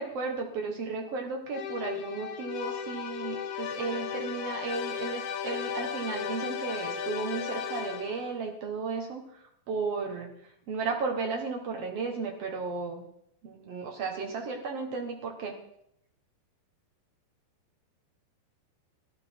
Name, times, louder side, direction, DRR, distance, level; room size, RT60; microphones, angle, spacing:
voice 1, 0.0-13.0 13.4-15.6, right 4 dB, 90° right, 2 dB, 1.3 m, -34 dB
sound 1, 1.5-8.4, left 8 dB, 65° left, 2.0 m, -35 dB
17.5 x 12.5 x 4.6 m, 0.73 s
omnidirectional pair, 5.4 m